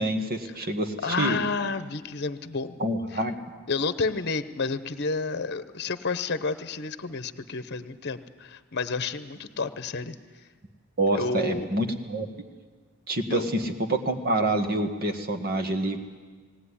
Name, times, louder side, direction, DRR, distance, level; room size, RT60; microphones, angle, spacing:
voice 1, 0.0-1.4 2.8-3.4 11.0-12.3 13.1-16.0, right 1 dB, 45° right, 6 dB, 1.7 m, -27 dB
voice 2, 1.0-2.8 3.1-3.2 3.7-10.2 11.1-11.7 13.3-13.5, left 4 dB, 50° left, 12 dB, 0.9 m, -30 dB
18.5 x 18.5 x 9.9 m, 1.5 s
head